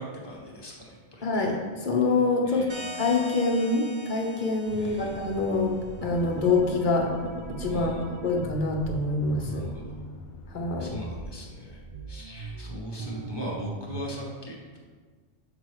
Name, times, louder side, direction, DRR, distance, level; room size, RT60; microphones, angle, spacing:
voice 1, 0.0-1.5 2.4-3.0 4.8-5.2 7.7-8.1 9.4-10.0 10.8-11.8 12.1-14.8, equal, 20° left, -3 dB, 1.3 m, -40 dB
voice 2, 1.2-1.6 1.8-2.6 3.0-5.8 6.0-7.1 7.5-8.0 8.2-9.6 10.5-10.9, left 3 dB, 45° left, 0 dB, 1.1 m, -25 dB
sound 1, 2.7-6.1, left 1 dB, 35° right, 1.2 m, -43 dB
Accelerating revving vroom, 4.6-11.2, left 2 dB, 90° left, 1.1 m, -43 dB
sound 2, 6.0-9.7 10.6-14.1, right 3 dB, 70° right, 0.3 m, -39 dB
7.2 x 6.0 x 3.2 m, 1.5 s
omnidirectional pair, 1.3 m